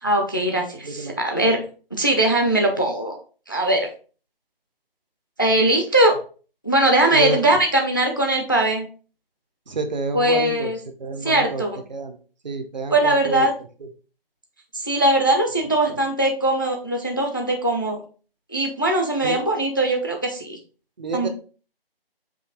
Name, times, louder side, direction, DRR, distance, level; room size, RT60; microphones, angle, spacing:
voice 1, 0.0-1.6 1.9-3.2 3.5-3.9 5.4-6.1 6.6-8.9 10.1-10.8 11.2-11.8 12.9-13.5 14.7-18.0 18.5-20.6 21.1-21.3, right 1 dB, 20° left, 2 dB, 0.4 m, -20 dB
voice 2, 0.8-1.2 7.1-7.4 9.7-10.7 11.0-11.6 11.9-12.2 12.4-13.5 19.2-19.4 21.0-21.3, right 3 dB, 50° right, 7 dB, 0.7 m, -28 dB
5.2 x 2.7 x 3.5 m, 0.38 s
figure-of-eight pair, 150°, 30 cm